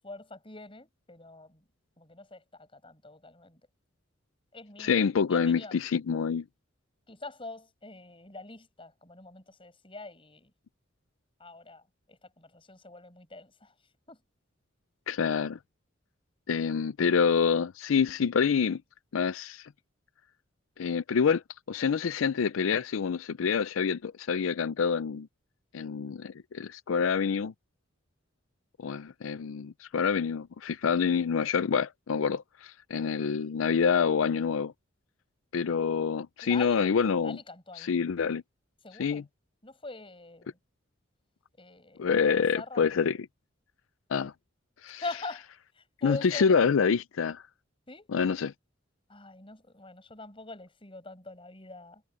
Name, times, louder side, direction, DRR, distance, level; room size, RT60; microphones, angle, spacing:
voice 1, 0.0-1.6 2.0-3.6 4.5-4.9 5.3-5.8 7.1-10.5 11.4-13.7 14.1-14.2 36.4-36.9 37.2-38.0 38.8-39.3 39.6-40.6 41.6-42.8 45.0-45.5 45.7-46.6 47.9-48.1 49.1-52.0, left 2 dB, 25° left, 6.7 m, -44 dB
voice 2, 4.8-6.4 15.1-15.6 16.5-18.8 19.1-19.7 20.8-21.4 21.7-25.3 25.7-27.5 28.8-34.7 35.5-37.4 37.8-38.4 39.0-39.2 42.0-43.2 44.1-44.3 44.8-45.0 46.0-47.4 48.1-48.5, left 6 dB, 85° left, 0.4 m, -27 dB
head